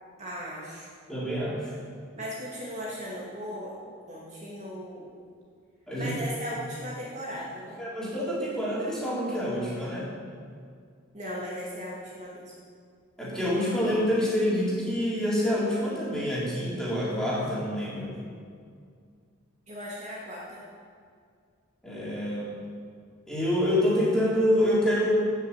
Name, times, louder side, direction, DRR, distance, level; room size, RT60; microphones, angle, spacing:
voice 1, 0.2-0.9 2.2-3.7 4.1-5.1 5.9-7.8 11.1-12.4 19.7-20.6, equal, 35° right, -6 dB, 2.3 m, -37 dB
voice 2, 1.1-1.7 5.9-6.1 7.8-10.1 13.2-18.2 21.8-22.5 23.3-25.1, equal, 5° left, -7 dB, 3.7 m, -27 dB
15.5 x 6.8 x 8.3 m, 2.2 s
head